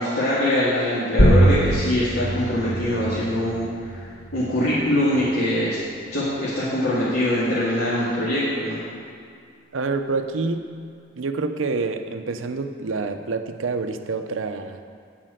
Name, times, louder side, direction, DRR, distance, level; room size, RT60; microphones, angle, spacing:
voice 1, 0.0-3.7 3.9-4.0 4.3-5.8 6.1-8.8, left 1 dB, 85° left, -10 dB, 1.9 m, -23 dB
sound 1, 1.2-6.3, right 1 dB, 60° left, 1.3 m, -23 dB
voice 2, 9.7-10.7 11.2-14.8, right 3 dB, 85° right, 7 dB, 0.6 m, -27 dB
11.5 x 4.3 x 7.9 m, 2.3 s
head